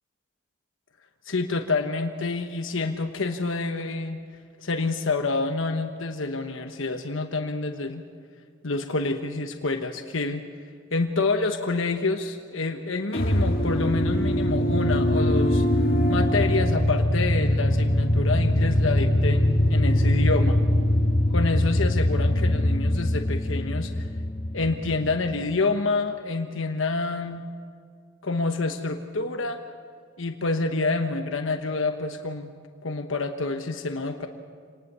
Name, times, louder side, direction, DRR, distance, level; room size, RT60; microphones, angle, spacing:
voice 1, 1.3-4.2 4.6-8.0 8.6-10.4 10.9-15.7 16.1-20.6 21.3-24.0 24.5-27.5 28.2-29.6 30.2-32.5 32.8-34.3, left 3 dB, 75° left, 5 dB, 1.2 m, -27 dB
sound 1, 13.1-25.4, left 1 dB, 50° left, 1.8 m, -22 dB
27.5 x 19.0 x 6.9 m, 2.1 s
head